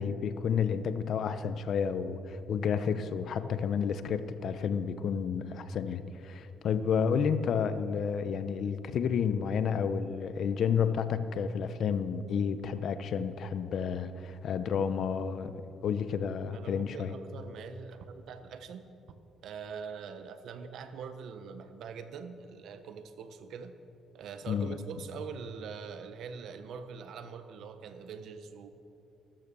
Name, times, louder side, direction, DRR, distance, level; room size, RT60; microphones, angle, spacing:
voice 1, 0.0-15.5 15.8-17.1 24.5-24.7, left 7 dB, 65° left, 12 dB, 0.9 m, -31 dB
voice 2, 16.5-18.9 19.4-23.7 24.1-28.7, right 6 dB, 75° right, 9 dB, 1.2 m, -43 dB
15.5 x 13.5 x 7.0 m, 2.7 s
cardioid pair, 90°, 0 cm